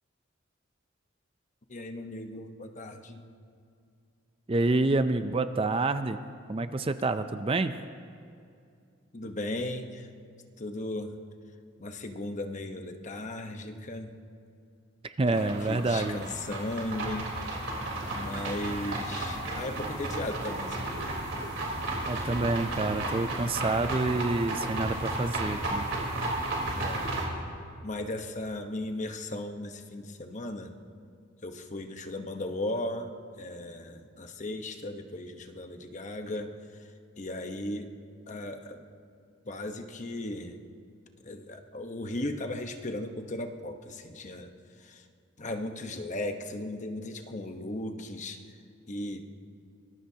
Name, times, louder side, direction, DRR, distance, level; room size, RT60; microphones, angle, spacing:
voice 1, 1.7-3.2 9.1-10.1 10.6-11.1 11.8-14.1 15.3-17.3 18.1-21.1 26.7-27.1 27.8-30.8 31.4-33.1 33.4-36.9 37.2-37.9 38.3-38.8 39.4-40.6 41.2-44.5 44.8-45.0 45.4-48.4 48.9-49.3, left 1 dB, 35° left, 5 dB, 1.1 m, -36 dB
voice 2, 4.5-6.2 6.5-7.8 15.0-16.2 18.8-18.9 22.0-25.8, right 2 dB, 30° right, 10 dB, 0.5 m, -28 dB
sound 1, 15.4-27.3, right 1 dB, 65° right, 3.8 m, -33 dB
25.0 x 20.5 x 2.9 m, 2.4 s
head